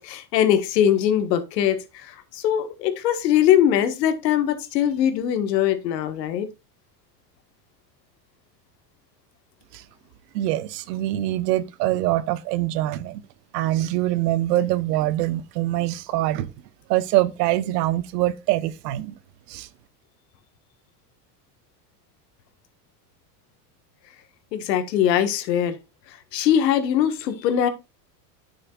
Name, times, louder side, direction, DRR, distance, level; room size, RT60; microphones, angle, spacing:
voice 1, 0.0-6.5 24.5-25.8 26.3-27.7, left 10 dB, 90° left, 1.5 m, -21 dB
voice 2, 10.3-13.2 13.5-16.5 16.9-19.1 19.5-19.7, right 15 dB, 75° right, 1.0 m, -24 dB
9.6 x 6.6 x 2.4 m
supercardioid pair, 130°, 48 cm